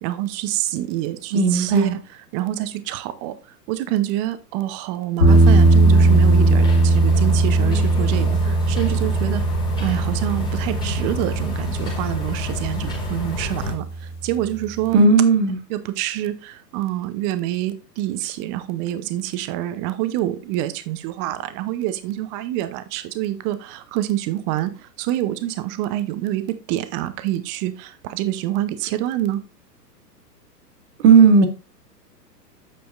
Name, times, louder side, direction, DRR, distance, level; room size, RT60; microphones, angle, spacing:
voice 1, 0.0-3.3 3.7-9.4 9.8-15.1 15.7-26.4 26.7-29.4, right 14 dB, 20° right, 12 dB, 0.6 m, -26 dB
voice 2, 1.3-1.9 14.9-15.6 31.0-31.5, right 4 dB, 40° right, 7 dB, 1.6 m, -14 dB
sound 1, 5.2-14.1, right 2 dB, 75° left, 2.6 m, -18 dB
sound 2, 5.3-13.7, left 2 dB, 10° left, 2.3 m, -30 dB
8.7 x 6.9 x 2.5 m, 0.32 s
figure-of-eight pair, 115°, 50 cm